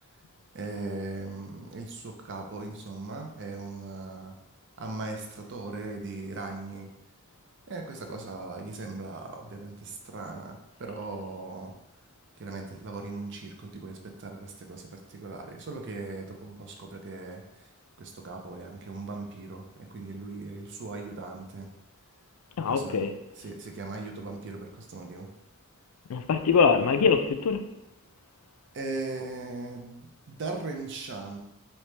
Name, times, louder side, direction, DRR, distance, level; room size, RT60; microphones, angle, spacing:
voice 1, 0.5-4.3 4.8-6.9 7.7-11.7 12.4-17.7 18.0-21.7 22.7-23.1 23.4-25.3 28.7-31.4, right 3 dB, 55° right, 3 dB, 0.5 m, -39 dB
voice 2, 22.6-23.1 26.1-27.6, left 5 dB, 85° left, 8 dB, 0.4 m, -23 dB
3.3 x 2.9 x 3.2 m, 0.88 s
head